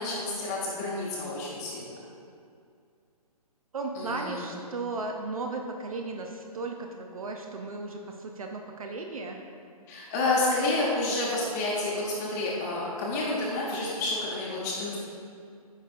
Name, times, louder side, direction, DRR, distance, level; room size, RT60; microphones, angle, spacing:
voice 1, 0.0-1.9 3.9-4.5 9.9-15.0, left 2 dB, 25° left, -5 dB, 1.0 m, -29 dB
voice 2, 3.7-9.4, right 3 dB, 65° right, 3 dB, 0.6 m, -35 dB
9.4 x 5.1 x 2.5 m, 2.3 s
figure-of-eight pair, 135°, 20 cm